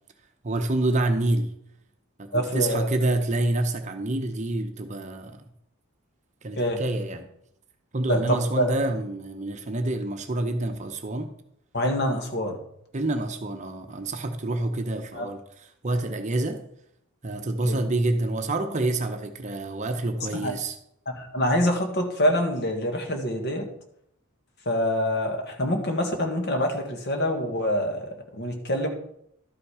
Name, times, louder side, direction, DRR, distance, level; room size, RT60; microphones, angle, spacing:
voice 1, 0.4-1.5 2.2-5.4 6.4-7.3 7.9-11.3 12.9-16.6 17.2-20.8, right 2 dB, 30° right, 0.8 m, -27 dB
voice 2, 2.3-2.9 6.6-6.8 8.1-8.7 11.7-12.6 15.1-15.3 17.6-17.8 20.3-20.5 21.0-23.7 24.6-28.9, equal, 50° left, 1.5 m, -26 dB
12.0 x 5.9 x 4.9 m
head